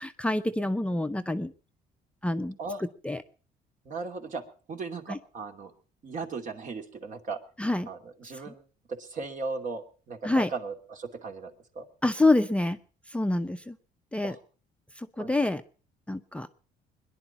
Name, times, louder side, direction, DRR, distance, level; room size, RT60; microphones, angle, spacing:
voice 1, 0.0-1.5 2.2-3.2 5.1-5.2 7.6-7.9 8.3-8.5 10.2-10.5 12.0-12.8 13.1-13.8 14.1-14.4 15.0-15.6 16.1-16.5, left 2 dB, 5° left, 8 dB, 0.7 m, -27 dB
voice 2, 3.8-4.4 4.7-5.7 6.0-7.4 7.9-8.6 8.9-11.9 14.2-14.4 15.2-15.5, right 4 dB, 50° right, 5 dB, 2.7 m, -37 dB
22.0 x 11.0 x 5.8 m, 0.40 s
cardioid pair, 110°, 16 cm